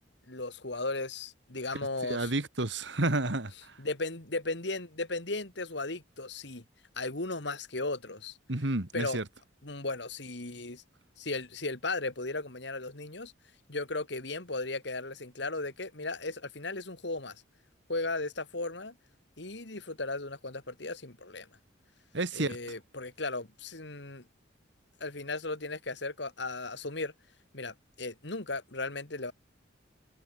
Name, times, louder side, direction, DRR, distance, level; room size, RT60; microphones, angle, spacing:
voice 1, 0.3-2.3 3.8-6.6 7.0-8.4 8.9-9.2 9.6-10.8 11.2-13.3 13.7-17.4 17.9-19.0 19.4-21.5 22.3-24.2 25.0-27.1 27.5-29.3, left 2 dB, 65° left, 2.5 m, -36 dB
voice 2, 2.0-3.8 8.5-9.2 22.1-22.6, right 2 dB, 70° right, 2.2 m, -30 dB
head